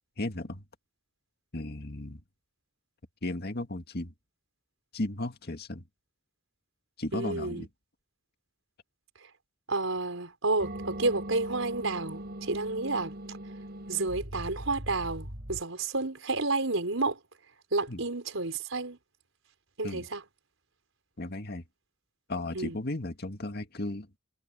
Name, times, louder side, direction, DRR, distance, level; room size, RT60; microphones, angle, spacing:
voice 1, 0.2-0.6 1.5-2.2 3.2-4.1 4.9-5.8 7.0-7.7 17.9-18.0 19.8-20.1 21.2-21.6 22.3-24.1, left 2 dB, 55° left, 2.1 m, -35 dB
voice 2, 7.1-7.6 9.7-13.1 13.9-17.2 17.7-19.0 19.8-20.2 22.5-22.7, right 3 dB, 85° right, 4.7 m, -30 dB
sound 1, 10.6-15.6, right 1 dB, 55° right, 4.6 m, -40 dB
head